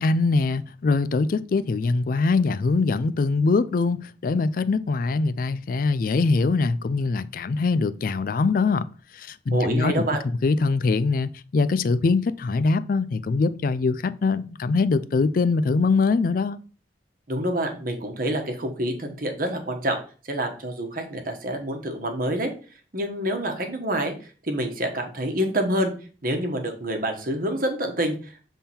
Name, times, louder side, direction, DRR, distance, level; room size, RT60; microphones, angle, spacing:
voice 1, 0.0-8.9 9.1-10.1 10.4-16.6, left 4 dB, 50° left, 0.4 m, -23 dB
voice 2, 9.5-10.2 17.3-20.0 20.3-22.5 22.9-24.1 24.4-25.9 26.2-28.5, right 1 dB, 50° right, 1.2 m, -27 dB
7.1 x 3.7 x 4.3 m
head